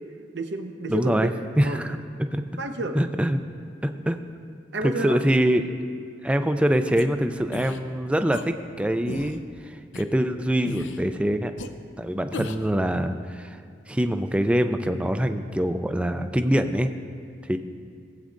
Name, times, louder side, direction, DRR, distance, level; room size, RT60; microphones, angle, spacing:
voice 1, 0.3-1.3 1.6-1.8 2.6-3.0 4.7-5.2, right 2 dB, 65° right, 6 dB, 0.8 m, -30 dB
voice 2, 0.9-1.3 1.6-2.0 2.3-2.4 3.0-3.4 3.8-4.2 5.0-5.7 6.2-11.5 12.0-13.6 13.9-16.9 17.4-17.6, equal, 5° right, 8 dB, 0.3 m, -24 dB
sound 1, 7.0-7.1 7.5-7.8 8.3-8.4 9.0-9.4 9.9-10.0 10.6-11.0 11.6-11.7 12.3-12.7, left 3 dB, 90° left, 0.5 m, -35 dB
17.5 x 8.3 x 2.6 m, 2.3 s
head